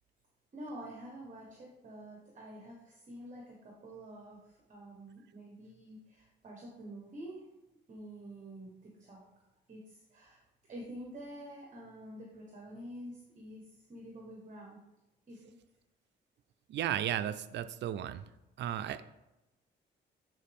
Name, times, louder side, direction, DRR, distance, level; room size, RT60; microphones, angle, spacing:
voice 1, 0.5-7.4 7.9-9.3 9.7-10.4 10.7-14.8 15.3-15.6, right 1 dB, 40° right, -1 dB, 1.3 m, -48 dB
voice 2, 16.7-18.2 18.6-19.0, right 11 dB, 70° right, 13 dB, 0.4 m, -34 dB
9.1 x 4.4 x 3.6 m, 0.95 s
cardioid pair, 120°, 19 cm